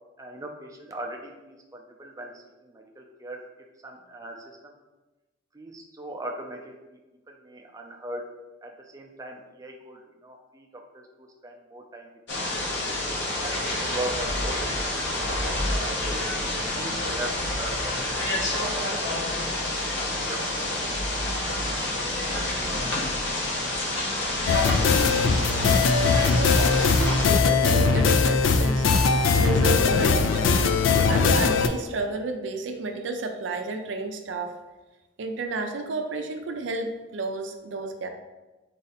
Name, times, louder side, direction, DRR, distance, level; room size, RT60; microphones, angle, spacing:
voice 1, 0.2-3.4 3.8-4.8 5.5-7.0 7.3-8.3 8.6-12.6 13.3-14.6 15.4-16.2 16.7-18.3 19.4-21.0, right 1 dB, 20° right, 1 dB, 0.4 m, -40 dB
sound 1, 12.3-27.3, left 1 dB, 65° left, 0.8 m, -28 dB
sound 2, 24.5-31.7, left 4 dB, 85° left, 0.3 m, -20 dB
voice 2, 26.1-28.9 29.4-30.6 31.0-34.6 35.2-38.1, right 3 dB, 70° right, 5 dB, 0.4 m, -31 dB
4.0 x 2.6 x 4.0 m, 1.1 s
head